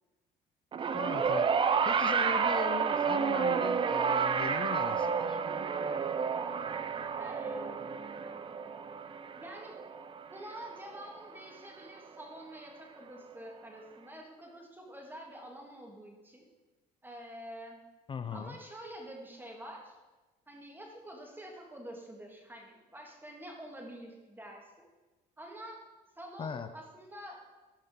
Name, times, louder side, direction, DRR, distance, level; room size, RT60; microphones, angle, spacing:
sound 1, 0.7-11.2 12.2-12.3, right 6 dB, 30° right, 0.5 m, -30 dB
voice 1, 0.9-1.5 1.8-5.4 18.1-18.6 26.4-26.7, left 6 dB, 30° left, 10 dB, 0.5 m, -39 dB
voice 2, 7.2-8.5 9.3-9.8 10.3-16.5 17.0-17.8 18.3-20.0 20.5-24.9 25.4-25.8 26.2-27.4, equal, 10° right, 0 dB, 1.7 m, -47 dB
12.5 x 5.3 x 3.7 m, 1.2 s
cardioid pair, 110°, 17 cm